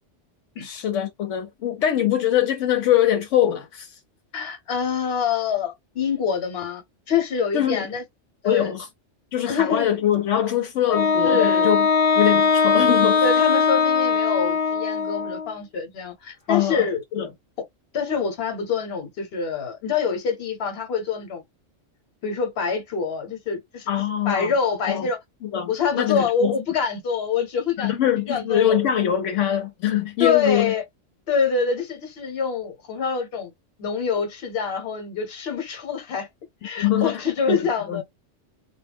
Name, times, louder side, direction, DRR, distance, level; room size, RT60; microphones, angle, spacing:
voice 1, 0.6-4.0 7.5-7.9 8.4-8.9 9.3-11.9 12.2-13.2 16.5-16.9 17.1-17.3 23.9-24.5 24.9-25.1 25.4-26.6 27.8-30.7 36.8-38.0, left 10 dB, 80° left, 0.9 m, -23 dB
voice 2, 4.3-6.8 7.1-8.0 8.4-8.7 9.4-9.9 11.2-11.7 13.2-17.0 17.9-21.4 22.2-23.9 24.3-25.2 25.7-27.9 28.3-28.8 30.2-30.8 31.3-33.5 33.8-36.3 36.6-38.0, left 6 dB, 60° left, 1.0 m, -25 dB
Wind instrument woodwind instrument, 10.9-15.5, left 5 dB, 35° left, 0.7 m, -20 dB
2.3 x 2.1 x 3.3 m
omnidirectional pair, 1.2 m